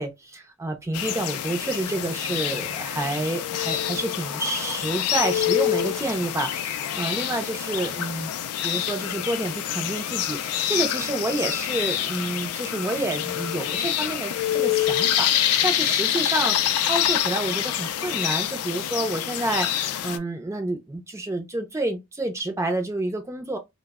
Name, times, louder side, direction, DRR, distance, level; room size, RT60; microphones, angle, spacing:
voice 1, 0.0-8.3 8.6-23.6, right 2 dB, 15° right, 0.4 m, -29 dB
sound 1, 0.9-20.2, left 11 dB, 90° left, 0.3 m, -26 dB
2.0 x 2.0 x 3.4 m
head